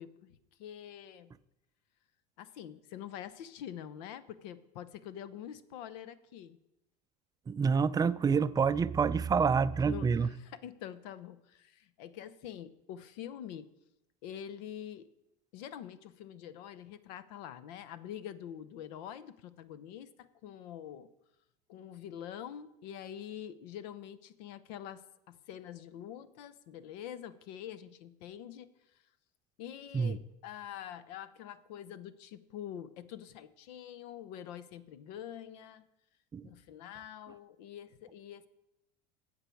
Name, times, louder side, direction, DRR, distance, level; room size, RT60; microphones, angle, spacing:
voice 1, 0.0-1.3 2.4-6.6 9.8-13.7 14.2-15.1 15.5-21.1 21.7-25.0 25.3-28.7 29.6-35.9 36.4-38.5, left 10 dB, 80° left, 0.8 m, -45 dB
voice 2, 7.5-10.3 29.9-30.2 36.3-36.5, right 5 dB, 20° right, 0.4 m, -27 dB
14.0 x 7.7 x 4.6 m
supercardioid pair, 105°, 21 cm